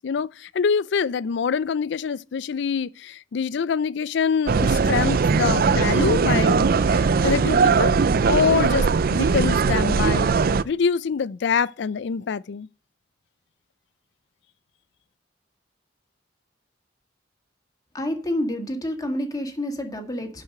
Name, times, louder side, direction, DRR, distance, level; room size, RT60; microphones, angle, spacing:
voice 1, 0.0-7.9 8.3-12.7, left 6 dB, 70° left, 0.4 m, -25 dB
sound 1, 4.5-10.6, right 5 dB, 55° right, 0.4 m, -20 dB
voice 2, 17.9-20.4, left 1 dB, 20° left, 1.8 m, -28 dB
10.5 x 4.9 x 6.5 m
head